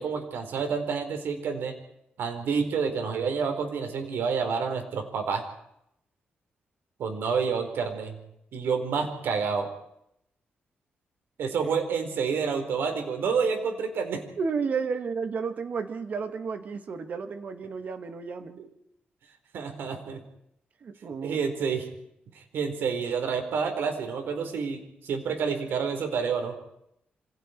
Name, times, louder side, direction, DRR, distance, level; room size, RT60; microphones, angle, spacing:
voice 1, 0.0-1.8 2.2-5.5 7.0-8.2 8.5-9.7 11.4-14.2 19.5-20.2 21.2-21.8 22.3-26.6, right 5 dB, 80° right, 5 dB, 4.6 m, -29 dB
voice 2, 14.4-18.6 20.8-21.4, right 5 dB, 45° right, 8 dB, 2.1 m, -32 dB
27.5 x 26.5 x 4.7 m, 0.77 s
wide cardioid pair, 175°, 4 cm